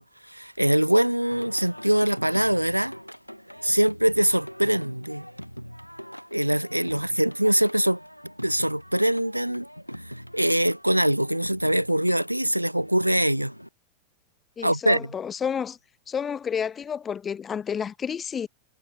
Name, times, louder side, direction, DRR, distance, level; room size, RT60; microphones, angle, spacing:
voice 1, 0.0-2.9 3.6-5.2 6.3-8.0 8.4-9.7 9.9-13.5 14.6-15.1, right 1 dB, 90° right, 0.5 m, -23 dB
Singing, 1.3-13.7, equal, 90° left, 1.1 m, -42 dB
voice 2, 14.6-15.8 16.1-18.5, left 7 dB, 20° left, 1.1 m, -30 dB
figure-of-eight pair, 90°, 0 cm